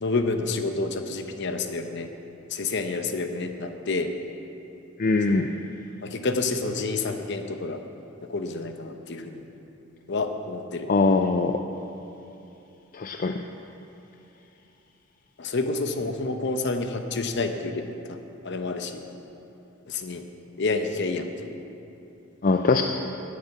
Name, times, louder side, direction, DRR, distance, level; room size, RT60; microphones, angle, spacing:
voice 1, 0.0-2.1 2.5-4.1 5.3-5.5 6.0-7.8 8.3-9.4 10.1-10.9 15.4-17.8 18.1-18.2 18.4-19.0 19.9-20.2 20.6-21.5, left 3 dB, 60° left, 6 dB, 0.9 m, -29 dB
voice 2, 5.0-5.5 10.9-11.6 12.9-13.4 22.4-22.8, left 3 dB, 40° left, 5 dB, 0.5 m, -22 dB
10.5 x 8.4 x 8.1 m, 2.8 s
head